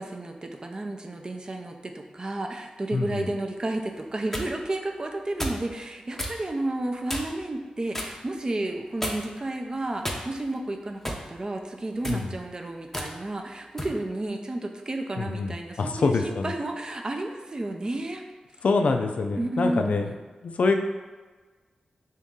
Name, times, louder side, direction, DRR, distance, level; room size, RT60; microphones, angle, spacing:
voice 1, 0.0-18.2 19.4-20.2, right 2 dB, 35° right, 3 dB, 0.5 m, -32 dB
voice 2, 2.9-3.3 12.0-12.3 15.2-16.5 18.6-20.1 20.4-20.7, left 4 dB, 70° left, 4 dB, 0.3 m, -25 dB
sound 1, 4.0-4.5 5.4-5.7 6.2-6.4 7.1-7.4 7.9-8.2 9.0-9.4 10.0-10.5 11.0-11.3 11.9-12.2 12.9-13.1 13.8-14.0, equal, 15° left, 0.6 m, -32 dB
3.9 x 2.7 x 3.6 m, 1.3 s
cardioid pair, 70°, 2 cm